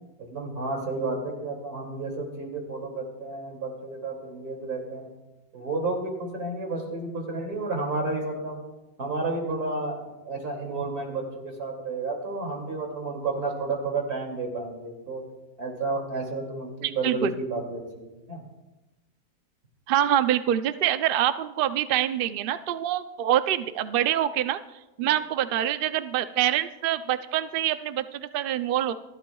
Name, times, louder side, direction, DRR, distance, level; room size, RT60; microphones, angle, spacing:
voice 1, 0.3-5.1 5.5-8.6 9.0-15.2 15.6-18.4 25.0-25.1, right 3 dB, 90° right, 0 dB, 3.2 m, -31 dB
voice 2, 16.8-17.3 19.9-24.6 25.0-28.9, right 11 dB, 65° right, 11 dB, 0.5 m, -25 dB
27.5 x 11.5 x 2.3 m, 1.0 s
omnidirectional pair, 1.6 m